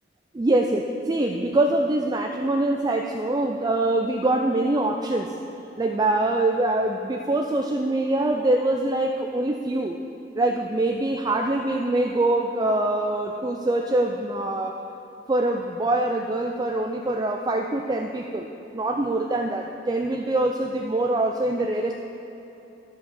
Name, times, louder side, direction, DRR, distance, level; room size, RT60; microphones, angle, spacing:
voice 1, 0.3-5.3 5.8-10.0 10.4-14.8 15.3-18.5 18.7-21.9, right 2 dB, 20° right, 3 dB, 0.4 m, -24 dB
13.0 x 5.3 x 6.6 m, 2.9 s
head